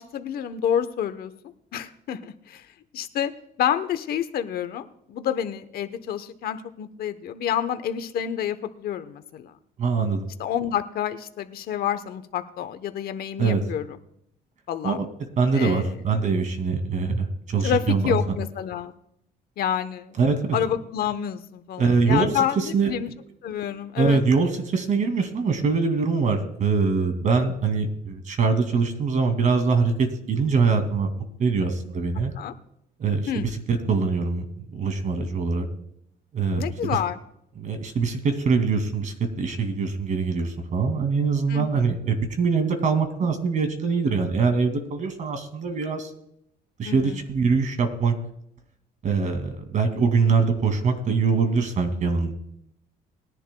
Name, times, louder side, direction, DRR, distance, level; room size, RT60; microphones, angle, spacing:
voice 1, 0.0-1.3 1.7-2.7 2.9-3.3 3.6-9.5 10.4-13.9 14.7-15.0 15.5-16.0 17.6-18.9 19.6-20.2 20.5-23.1 23.4-24.2 32.4-32.5 33.3-33.5 36.5-37.2 41.5-41.7 46.8-47.2, left 9 dB, 65° left, 11 dB, 1.0 m, -28 dB
voice 2, 9.8-10.3 13.4-13.6 14.8-15.1 15.4-18.4 20.2-20.6 21.8-22.3 22.6-23.1 24.0-31.1 31.4-32.3 33.0-34.4 34.7-35.7 36.3-37.0 37.6-46.1 46.8-48.2 49.0-52.3, right 4 dB, 45° right, 6 dB, 2.5 m, -23 dB
21.0 x 11.0 x 2.3 m, 0.76 s
cardioid pair, 110°, 17 cm